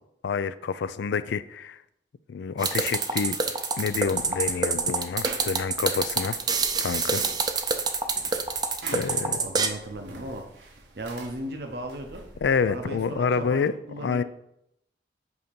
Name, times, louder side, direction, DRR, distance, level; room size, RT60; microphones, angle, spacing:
voice 1, 0.2-1.8 2.3-3.4 3.8-6.4 6.8-7.2 8.9-9.4 12.4-13.7 14.0-14.2, left 5 dB, 80° left, 0.3 m, -27 dB
sound 1, 2.6-9.7, right 4 dB, 25° right, 0.5 m, -26 dB
sound 2, 3.8-13.5, right 2 dB, 85° right, 1.0 m, -46 dB
voice 2, 9.1-10.4 10.9-12.2 12.7-14.2, right 1 dB, 65° right, 0.7 m, -36 dB
8.2 x 2.8 x 5.2 m
head